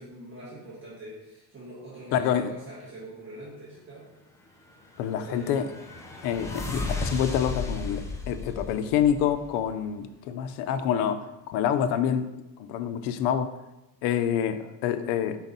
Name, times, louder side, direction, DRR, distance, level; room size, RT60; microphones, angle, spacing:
voice 1, 0.0-4.1 5.2-5.6, right 1 dB, 30° right, -8 dB, 1.5 m, -44 dB
voice 2, 2.1-2.5 5.0-5.7 6.2-12.3 12.6-13.5 14.0-15.4, left 9 dB, 75° left, 10 dB, 0.6 m, -27 dB
sound 1, 4.8-9.7, left 3 dB, 10° left, 0.3 m, -35 dB
5.7 x 4.5 x 3.9 m, 0.97 s
cardioid pair, 170°, 40 cm